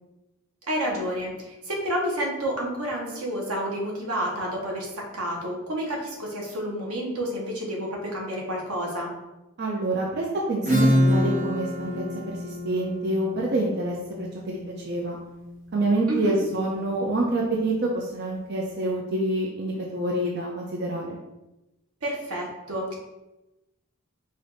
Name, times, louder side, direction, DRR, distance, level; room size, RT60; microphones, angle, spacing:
voice 1, 0.7-9.1 16.1-16.4 22.0-23.0, equal, 85° right, -1 dB, 1.2 m, -30 dB
voice 2, 9.6-14.6 14.8-15.2 15.7-21.2, right 2 dB, 50° right, -1 dB, 0.5 m, -27 dB
Acoustic guitar / Strum, 10.7-16.0, equal, 30° right, 1.0 m, -26 dB
5.1 x 2.6 x 4.0 m, 0.98 s
head